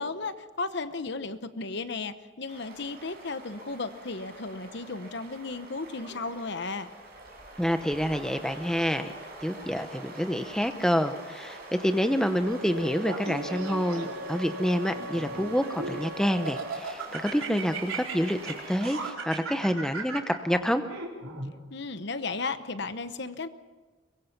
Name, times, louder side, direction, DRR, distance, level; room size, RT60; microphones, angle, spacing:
voice 1, 0.0-6.9 21.7-23.5, left 3 dB, 55° left, 11 dB, 1.0 m, -34 dB
sound 1, 2.5-19.1, right 1 dB, 45° right, 7.1 m, -45 dB
voice 2, 7.6-9.1 9.4-20.8, equal, 5° left, 8 dB, 0.8 m, -28 dB
Wind instrument woodwind instrument, 12.4-16.9, right 1 dB, 65° right, 0.9 m, -41 dB
Laughter, 13.0-14.3 14.9-16.0 16.5-21.5, right 4 dB, 90° right, 4.2 m, -37 dB
23.5 x 22.0 x 6.0 m, 1.2 s
head